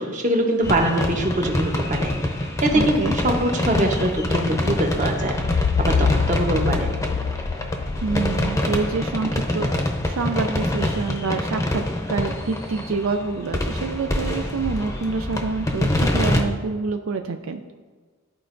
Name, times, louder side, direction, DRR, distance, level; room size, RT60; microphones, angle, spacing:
voice 1, 0.0-2.1 2.6-3.0 3.2-5.4 5.8-6.9, right 1 dB, 35° right, 2 dB, 0.9 m, -23 dB
sound 1, 0.6-16.4, left 1 dB, 15° left, 0.7 m, -25 dB
voice 2, 2.7-3.2 8.0-11.8 12.1-17.6, right 4 dB, 75° right, 6 dB, 0.4 m, -27 dB
sound 2, 5.4-9.2, left 5 dB, 50° left, 0.3 m, -25 dB
13.0 x 4.4 x 2.6 m, 1.5 s
head